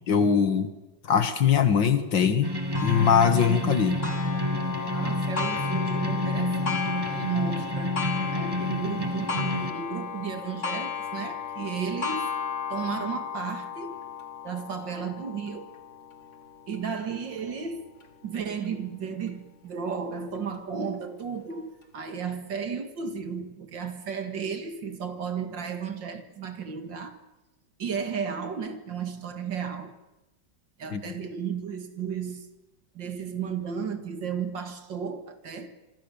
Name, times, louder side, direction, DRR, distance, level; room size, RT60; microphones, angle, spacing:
voice 1, 0.1-0.7 1.1-4.0 30.9-31.1, left 7 dB, 70° left, 10 dB, 2.4 m, -22 dB
sound 1, 2.4-9.7, left 1 dB, 15° right, 1.4 m, -29 dB
Clock, 2.7-18.1 18.6-18.7 19.3-19.4 20.3-20.4, left 6 dB, 40° left, 2.4 m, -35 dB
voice 2, 4.9-8.0 8.3-12.3 12.7-14.0 14.4-15.7 16.7-17.8 18.2-27.2 27.8-29.9 30.8-32.5 32.9-35.7, right 6 dB, 70° right, 8 dB, 2.6 m, -34 dB
26.5 x 24.5 x 7.0 m, 1.0 s
omnidirectional pair, 2.1 m